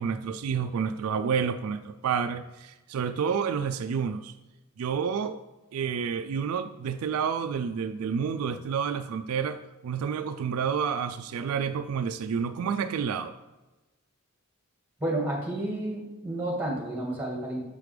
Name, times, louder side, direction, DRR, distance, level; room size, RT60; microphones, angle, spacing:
voice 1, 0.0-4.3 4.8-5.4 5.7-13.3, right 6 dB, 80° right, 10 dB, 0.3 m, -29 dB
voice 2, 15.0-17.6, right 1 dB, 10° right, -2 dB, 1.6 m, -31 dB
6.8 x 5.0 x 3.2 m, 1.1 s
head